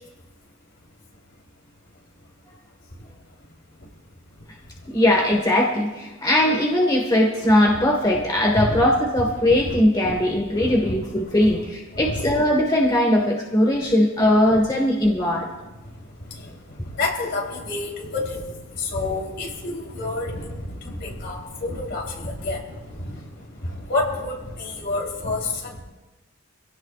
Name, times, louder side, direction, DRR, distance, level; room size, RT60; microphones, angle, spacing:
voice 1, 4.9-15.5, left 1 dB, 20° left, 0 dB, 1.5 m, -20 dB
voice 2, 9.7-10.2 10.6-11.0 11.4-11.5 11.9-12.3 16.3-16.4 16.9-18.4 18.7-23.3 23.6-25.8, left 2 dB, 55° left, 0 dB, 3.5 m, -29 dB
26.5 x 17.0 x 2.4 m, 1.1 s
head